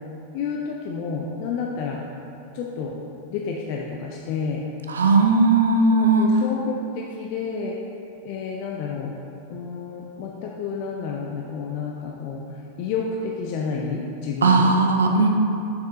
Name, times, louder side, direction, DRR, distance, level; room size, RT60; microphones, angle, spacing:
voice 1, 0.3-2.0 2.5-2.9 3.3-4.6 6.0-7.8 8.2-9.1 9.5-14.7, left 5 dB, 45° left, -2 dB, 0.5 m, -30 dB
voice 2, 4.9-6.3 14.4-15.3, right 3 dB, 70° right, 3 dB, 0.5 m, -17 dB
6.5 x 6.0 x 2.8 m, 2.8 s
figure-of-eight pair, 90°, 0 cm